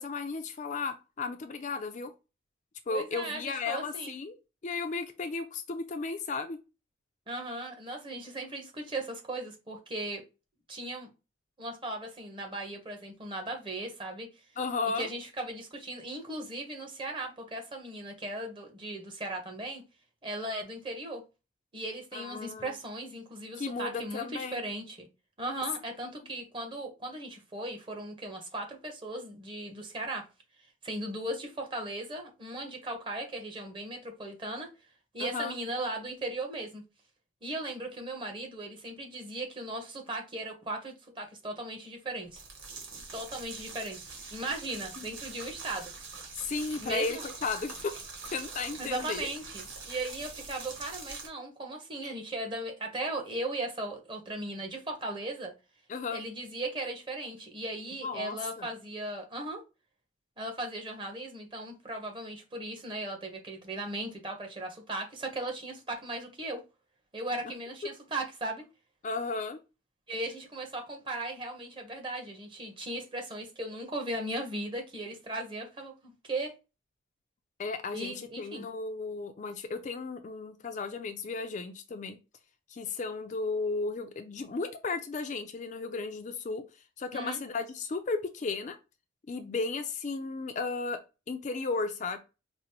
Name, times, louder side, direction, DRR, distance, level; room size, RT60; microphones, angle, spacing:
voice 1, 0.0-2.1 2.9-4.4 4.6-6.6 14.6-15.1 22.1-22.7 23.6-24.6 35.2-35.5 45.0-45.1 46.3-49.3 52.0-52.1 55.9-56.2 58.0-58.7 69.0-69.6 77.6-82.2 82.7-86.6 87.0-88.8 89.3-91.0 91.3-92.2, left 4 dB, 40° left, 0.4 m, -34 dB
voice 2, 2.9-4.2 7.3-10.2 10.7-11.1 11.6-14.3 14.9-19.8 20.2-21.2 21.7-25.1 25.4-30.3 30.8-34.7 35.1-36.8 37.4-42.4 43.1-45.9 46.8-47.2 48.8-55.5 56.1-59.6 60.4-66.6 67.1-68.6 70.1-76.6 77.9-78.7 87.1-87.4, right 2 dB, 25° right, 0.9 m, -37 dB
sound 1, 42.3-51.3, right 4 dB, 90° right, 1.4 m, -44 dB
5.0 x 2.0 x 2.8 m
head